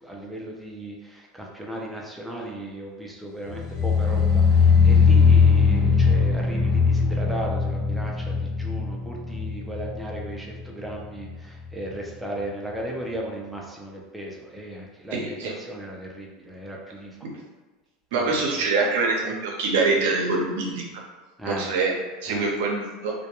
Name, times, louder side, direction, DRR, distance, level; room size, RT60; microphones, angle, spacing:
voice 1, 0.0-17.3 18.2-18.7 21.4-21.7 22.3-22.5, right 1 dB, 5° right, -2 dB, 0.5 m, -36 dB
sound 1, 3.5-10.6 10.9-11.3 11.7-11.8, left 5 dB, 30° left, 1.1 m, -20 dB
voice 2, 15.1-15.5 18.1-20.8 21.4-22.0 22.2-23.1, right 3 dB, 75° right, 0 dB, 0.6 m, -24 dB
2.2 x 2.2 x 2.9 m, 1.3 s
supercardioid pair, 130°, 0 cm